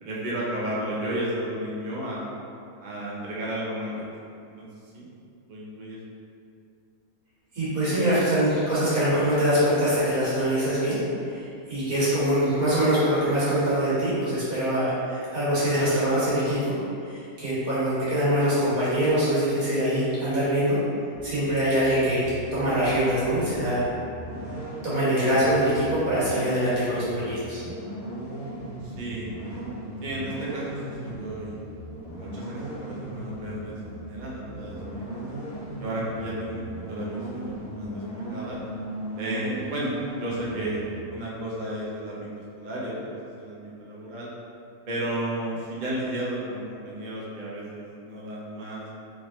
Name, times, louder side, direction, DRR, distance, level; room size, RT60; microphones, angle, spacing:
voice 1, 0.0-2.3 2.8-4.0 4.6-4.7 4.9-5.1 5.5-6.0 28.8-29.3 30.0-31.6 32.2-35.1 35.8-38.6 39.1-39.9 40.2-42.3 42.6-44.3 44.9-48.9, right 1 dB, 45° right, -5 dB, 0.6 m, -33 dB
voice 2, 7.5-11.0 11.3-16.7 17.0-20.8 21.2-23.9 24.8-27.6, equal, 75° right, -11 dB, 2.1 m, -24 dB
sound 1, 21.1-41.0, right 1 dB, 15° left, 0.7 m, -37 dB
3.7 x 3.4 x 3.0 m, 2.5 s
omnidirectional pair, 1.5 m